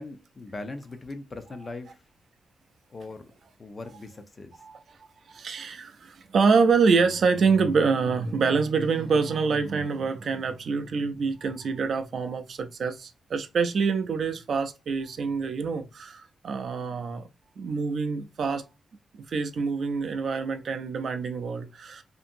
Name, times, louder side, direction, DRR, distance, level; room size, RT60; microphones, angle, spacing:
voice 1, 0.0-2.0 2.9-3.3 3.6-4.6, left 2 dB, 25° left, 0.3 m, -40 dB
voice 2, 4.6-5.0 5.3-17.3 17.6-18.6 19.3-22.0, right 5 dB, 55° right, 0.3 m, -26 dB
2.7 x 2.5 x 2.5 m
wide cardioid pair, 160°, 0 cm